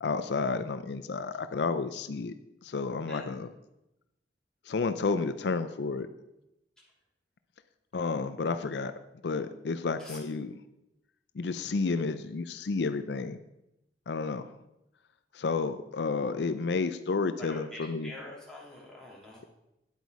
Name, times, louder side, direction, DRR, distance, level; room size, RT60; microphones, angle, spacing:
voice 1, 0.0-2.3 2.6-3.5 4.7-6.1 7.9-8.9 9.2-10.5 11.4-13.4 14.1-14.5 15.3-18.1, left 4 dB, 75° left, 11 dB, 0.5 m, -31 dB
voice 2, 17.4-19.5, left 1 dB, 5° left, -6 dB, 3.1 m, -45 dB
10.0 x 8.1 x 4.8 m, 0.89 s
head